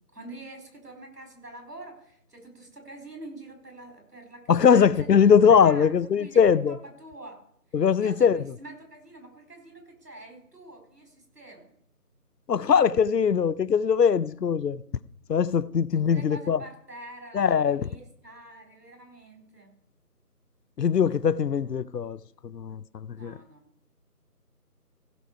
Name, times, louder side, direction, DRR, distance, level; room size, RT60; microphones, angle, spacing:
voice 1, 0.1-5.1 5.4-7.4 7.7-11.7 15.9-19.7 23.1-23.6, right 2 dB, 80° right, 4.4 m, -46 dB
voice 2, 4.5-6.7 7.7-8.4 12.5-14.8 15.3-16.6 17.3-17.8 20.8-22.2 22.5-23.4, left 7 dB, 90° left, 0.7 m, -21 dB
15.5 x 6.5 x 4.6 m
figure-of-eight pair, 165°, 47 cm